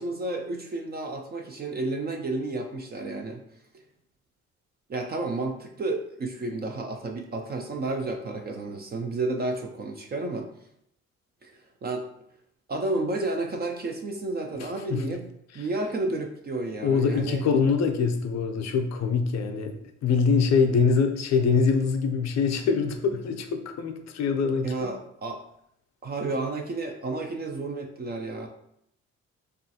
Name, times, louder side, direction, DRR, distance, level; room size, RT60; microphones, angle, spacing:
voice 1, 0.0-3.4 4.9-10.5 11.4-12.1 12.7-17.4 24.6-25.4 26.0-28.5, right 2 dB, 35° right, 4 dB, 0.4 m, -31 dB
voice 2, 14.6-15.0 16.8-19.8 20.0-24.7, left 5 dB, 60° left, 6 dB, 0.5 m, -24 dB
3.0 x 2.4 x 2.7 m, 0.73 s
cardioid pair, 90°, 30 cm